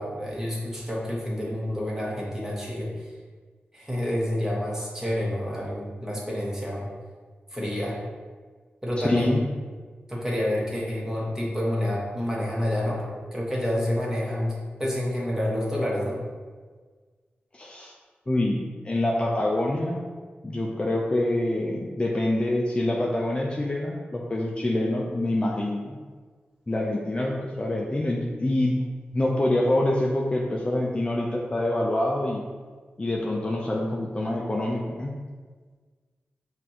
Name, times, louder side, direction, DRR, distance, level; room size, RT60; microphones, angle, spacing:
voice 1, 0.0-3.1 3.7-6.9 7.5-8.0 8.8-9.3 10.1-14.5 14.8-16.2, left 1 dB, 10° right, -5 dB, 1.3 m, -28 dB
voice 2, 9.0-9.4 17.5-17.9 18.3-20.0 20.4-26.0 26.7-28.8 29.1-32.4 33.0-35.1, left 1 dB, 25° left, -2 dB, 0.5 m, -26 dB
5.8 x 2.5 x 2.9 m, 1.5 s
cardioid pair, 60°, 4 cm